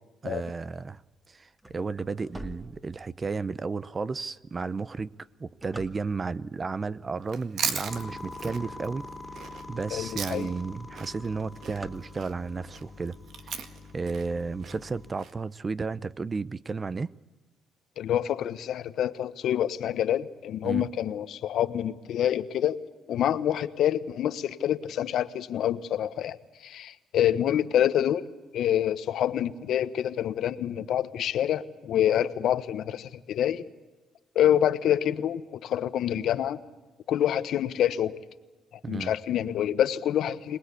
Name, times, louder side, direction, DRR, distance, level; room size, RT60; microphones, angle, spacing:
voice 1, 0.2-1.0 1.3-5.1 5.4-9.1 9.7-13.2 13.9-17.1 20.6-20.8 38.8-39.1, right 4 dB, 30° right, 0.7 m, -33 dB
sound 1, 1.3-3.4 4.0-4.1 4.7-6.5 7.1-7.3 7.6-9.1 9.6-9.7 10.0-10.1 10.4-10.7 11.0-12.6, right 1 dB, 15° right, 2.3 m, -46 dB
Chewing mastication, 7.2-10.7 10.9-15.3, right 7 dB, 70° right, 2.0 m, -37 dB
sound 2, 7.9-15.1, left 2 dB, 5° left, 3.4 m, -44 dB
voice 2, 9.9-10.5 18.0-22.8 23.1-26.4 26.6-28.3 28.5-33.6 34.3-36.6 37.1-38.1 38.9-40.6, left 10 dB, 75° left, 1.1 m, -27 dB
26.0 x 19.0 x 8.5 m
cardioid pair, 90°, 0 cm